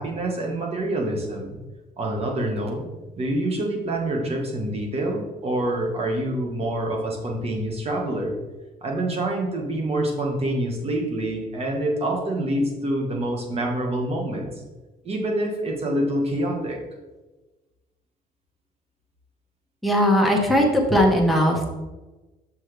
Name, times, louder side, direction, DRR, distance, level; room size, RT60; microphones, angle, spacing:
voice 1, 0.0-1.6 2.0-2.9 3.2-8.3 8.8-14.5 15.0-16.8, right 1 dB, 35° right, 0 dB, 1.7 m, -26 dB
voice 2, 19.8-21.7, equal, ahead, -1 dB, 1.4 m, -19 dB
6.4 x 6.2 x 3.4 m, 1.1 s
cardioid pair, 110°, 17 cm